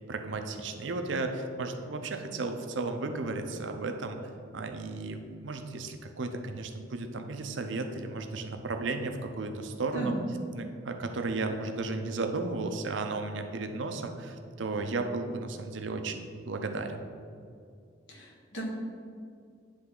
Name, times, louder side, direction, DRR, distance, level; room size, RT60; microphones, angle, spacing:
voice 1, 0.1-4.2 4.5-10.1 10.5-17.0, right 3 dB, 75° right, 6 dB, 0.6 m, -34 dB
voice 2, 18.1-18.6, right 2 dB, 75° left, -2 dB, 1.4 m, -35 dB
9.6 x 3.4 x 3.8 m, 2.3 s
head